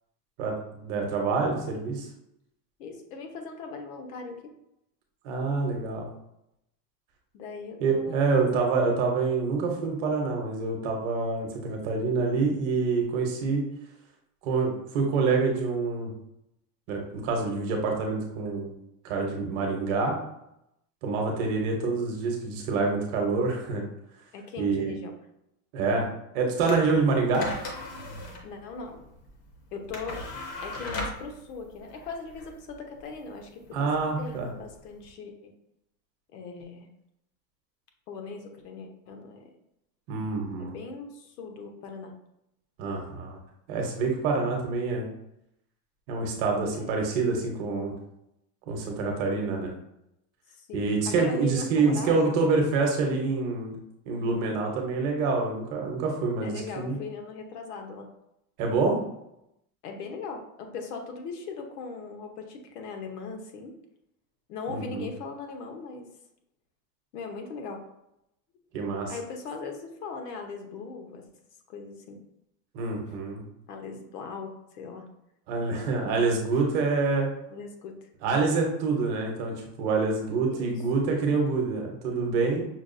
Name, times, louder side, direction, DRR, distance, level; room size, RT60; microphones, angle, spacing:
voice 1, 0.4-2.1 5.2-6.1 7.8-13.6 14.4-16.1 16.9-18.7 19.0-20.2 21.0-23.8 24.6-24.9 25.7-26.1 26.3-27.5 33.7-34.5 40.1-40.7 42.8-43.4 43.7-45.1 46.1-47.9 48.7-49.7 50.7-53.8 54.1-57.0 58.6-59.0 64.7-65.1 68.7-69.1 72.7-73.4 75.5-77.3 78.2-82.7, right 4 dB, 40° right, 1 dB, 0.8 m, -26 dB
voice 2, 2.8-4.5 7.3-8.3 21.8-22.0 24.3-25.1 28.4-29.0 29.7-30.2 30.6-33.9 34.2-35.5 36.3-36.9 38.1-39.5 40.6-42.2 46.7-46.9 50.5-52.3 52.6-52.7 56.4-58.1 59.8-63.8 64.5-66.1 67.1-67.8 69.1-71.3 71.7-72.2 73.7-75.1 77.5-78.1 80.5-80.8, left 4 dB, 80° left, 4 dB, 1.0 m, -39 dB
sound 1, 26.6-35.1, left 2 dB, 30° left, 0.6 m, -39 dB
5.8 x 2.3 x 2.5 m, 0.82 s
supercardioid pair, 170°, 48 cm